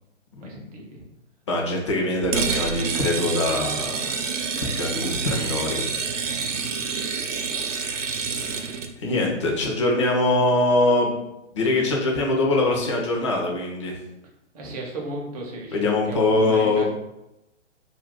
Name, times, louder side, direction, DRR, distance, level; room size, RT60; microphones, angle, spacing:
voice 1, 0.4-1.1 14.5-16.9, right 2 dB, 30° right, -1 dB, 0.6 m, -35 dB
voice 2, 1.5-4.1 4.6-5.8 8.3-8.7 9.0-11.2 11.5-13.9 15.7-16.9, left 2 dB, 25° left, -1 dB, 0.4 m, -23 dB
sound 1, 2.3-8.9, right 5 dB, 85° right, 0.5 m, -28 dB
2.4 x 2.2 x 3.5 m, 0.89 s
figure-of-eight pair, 135°, 37 cm